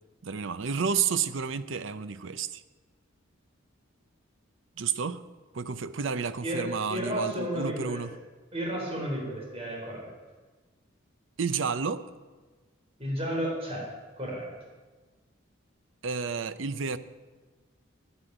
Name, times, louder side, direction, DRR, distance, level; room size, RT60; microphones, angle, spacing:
voice 1, 0.2-2.6 4.8-5.2 5.5-8.1 11.4-12.0 16.0-17.0, right 6 dB, 70° right, 13 dB, 0.6 m, -30 dB
voice 2, 6.4-8.0 8.5-10.1 13.0-13.8 14.2-14.5, right 1 dB, 30° right, -2 dB, 4.2 m, -32 dB
9.7 x 9.7 x 9.0 m, 1.3 s
head